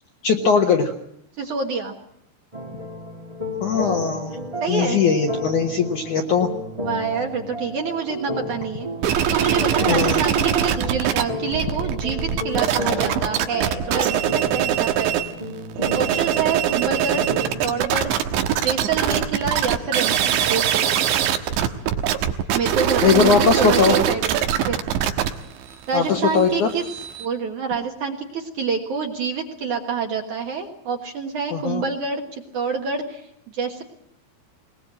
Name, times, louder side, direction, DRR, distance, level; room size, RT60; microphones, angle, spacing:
voice 1, 0.2-0.9 3.6-4.4 4.7-6.5 9.9-10.2 17.1-17.3 23.0-24.0 25.9-26.7 31.5-31.8, left 6 dB, 65° left, 3 dB, 2.1 m, -20 dB
voice 2, 1.4-1.9 4.6-5.0 6.8-8.9 9.3-15.3 15.9-17.3 17.6-18.1 18.6-21.0 22.5-24.8 25.9-26.8 27.2-33.8, right 5 dB, 60° right, 3 dB, 2.3 m, -27 dB
sound 1, 2.5-17.7, left 1 dB, 25° right, 0.7 m, -32 dB
sound 2, 9.0-11.2 11.5-15.3 15.7-27.3, right 10 dB, 85° right, 3.6 m, -22 dB
21.0 x 20.5 x 7.7 m, 0.75 s
omnidirectional pair, 5.2 m